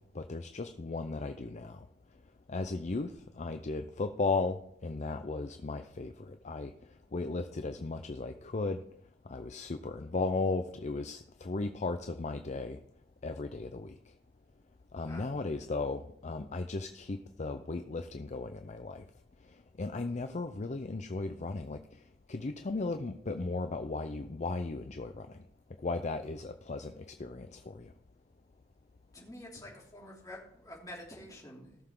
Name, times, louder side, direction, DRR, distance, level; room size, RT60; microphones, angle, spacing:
voice 1, 0.1-1.8 2.5-3.1 3.4-4.6 4.8-6.7 7.1-8.8 9.3-12.8 13.2-13.9 14.9-19.0 19.8-21.8 22.3-25.3 25.8-27.9, left 3 dB, 40° left, 7 dB, 0.5 m, -36 dB
voice 2, 29.1-31.8, left 1 dB, 20° left, -3 dB, 3.0 m, -48 dB
17.5 x 6.8 x 3.8 m, 0.72 s
head